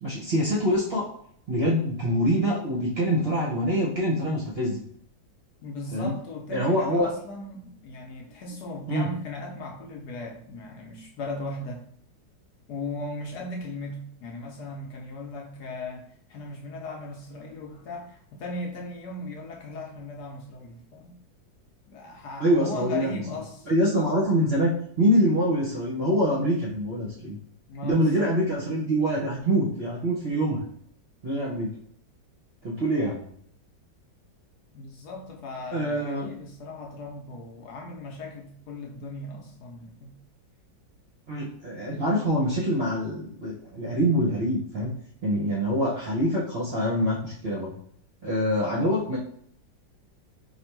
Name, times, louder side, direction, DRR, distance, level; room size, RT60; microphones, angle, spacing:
voice 1, 0.0-1.1 1.5-4.8 5.9-6.1 6.5-7.1 8.9-9.1 22.4-23.2 23.7-27.4 27.8-30.6 31.2-31.7 32.6-33.2 35.7-36.3 41.3-44.9 45.2-47.7 48.2-49.2, equal, 50° right, -5 dB, 0.7 m, -25 dB
voice 2, 5.6-11.9 12.7-21.2 21.9-23.7 27.7-28.4 34.7-40.2, left 2 dB, 70° left, 0 dB, 1.1 m, -37 dB
3.3 x 2.5 x 4.4 m, 0.64 s
omnidirectional pair, 2.1 m